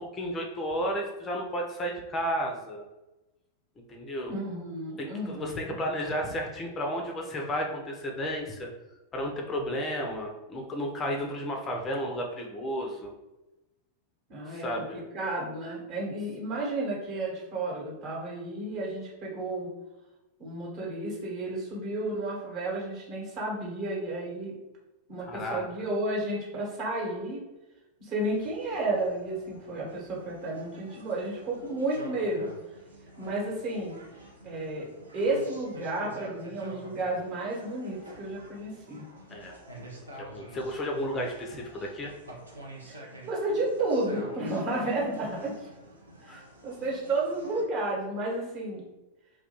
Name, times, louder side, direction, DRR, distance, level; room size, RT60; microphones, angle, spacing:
voice 1, 0.0-2.8 3.9-4.3 5.0-8.7 9.1-13.1 14.5-15.0 25.3-25.6 39.3-39.6 40.2-42.1 46.3-46.4, equal, 25° left, 2 dB, 0.4 m, -33 dB
voice 2, 4.3-5.7 14.3-19.7 20.4-24.6 25.1-27.5 28.0-32.5 33.2-33.9 34.4-39.1 42.9-45.7 46.2-48.8, right 2 dB, 40° right, -4 dB, 1.0 m, -32 dB
sound 1, 28.2-47.6, right 1 dB, 80° right, 0.5 m, -48 dB
2.2 x 2.1 x 2.9 m, 1.0 s
figure-of-eight pair, 90°, 0 cm